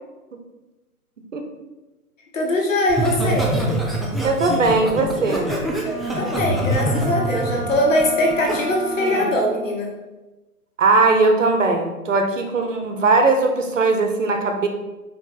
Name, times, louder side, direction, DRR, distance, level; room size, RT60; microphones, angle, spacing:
voice 1, 2.3-3.5 6.2-9.9, left 1 dB, 55° left, -2 dB, 2.0 m, -21 dB
Laughter, 2.9-8.6 9.0-9.3, equal, ahead, 0.3 m, -24 dB
voice 2, 4.2-5.5 10.8-14.7, right 3 dB, 55° right, 5 dB, 0.9 m, -19 dB
Wind instrument woodwind instrument, 5.8-9.8, right 5 dB, 80° left, 1.5 m, -33 dB
5.2 x 5.0 x 4.2 m, 1.1 s
figure-of-eight pair, 145°, 46 cm